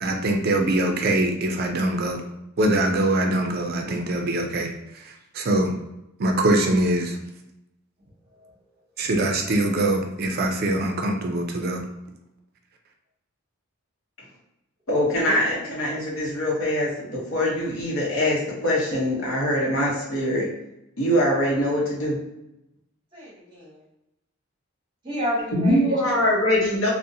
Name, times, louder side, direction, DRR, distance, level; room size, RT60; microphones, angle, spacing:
voice 1, 0.0-2.2 2.6-5.8 6.2-7.2 9.0-11.9, right 1 dB, 45° right, 3 dB, 0.4 m, -23 dB
voice 2, 14.9-20.5 21.0-22.2 25.5-26.9, left 1 dB, 65° left, -4 dB, 0.9 m, -23 dB
voice 3, 23.1-23.8 25.0-26.0, equal, 20° right, -4 dB, 0.7 m, -31 dB
2.6 x 2.1 x 2.7 m, 0.88 s
head